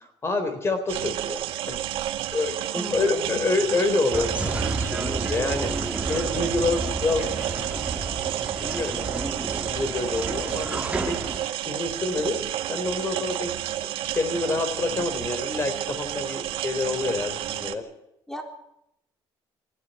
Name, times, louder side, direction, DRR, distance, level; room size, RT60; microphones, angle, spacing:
voice 1, 0.2-1.4 1.7-1.8 2.3-7.3 8.6-9.1 9.3-12.4 12.7-13.5 13.8-17.9, left 3 dB, 30° left, 8 dB, 3.6 m, -28 dB
sound 1, 0.9-17.7, right 12 dB, 80° right, 1.9 m, -31 dB
voice 2, 2.7-3.4 18.3-18.4, equal, 5° left, 3 dB, 3.8 m, -37 dB
sound 2, 4.1-11.4, right 2 dB, 15° right, 2.0 m, -31 dB
23.0 x 16.0 x 9.1 m, 0.81 s
cardioid pair, 130°, 9 cm